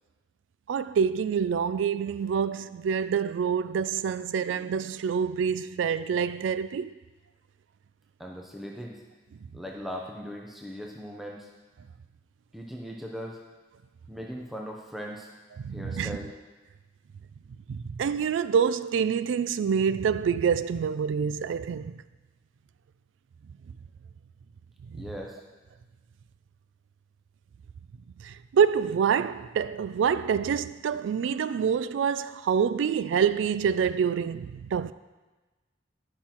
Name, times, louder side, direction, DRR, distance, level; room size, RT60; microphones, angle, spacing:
voice 1, 0.7-6.9 15.6-16.2 17.7-22.0 24.9-25.0 28.2-34.9, right 7 dB, 80° right, 0.3 m, -26 dB
voice 2, 8.2-9.0 9.5-11.5 12.5-13.4 14.1-15.3 15.7-16.3 24.9-25.4, equal, ahead, 0.7 m, -39 dB
11.5 x 5.8 x 4.4 m
head